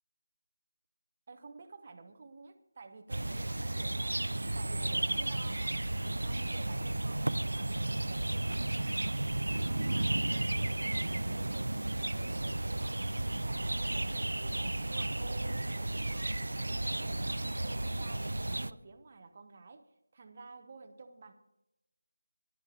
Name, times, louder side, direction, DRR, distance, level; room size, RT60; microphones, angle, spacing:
voice 1, 1.3-9.3 9.5-16.4 16.7-21.3, right 4 dB, 30° right, 5 dB, 1.1 m, -52 dB
sound 1, 3.1-18.7, right 1 dB, 80° right, 0.5 m, -33 dB
11.5 x 9.1 x 7.2 m, 0.88 s
figure-of-eight pair, 170°, 0 cm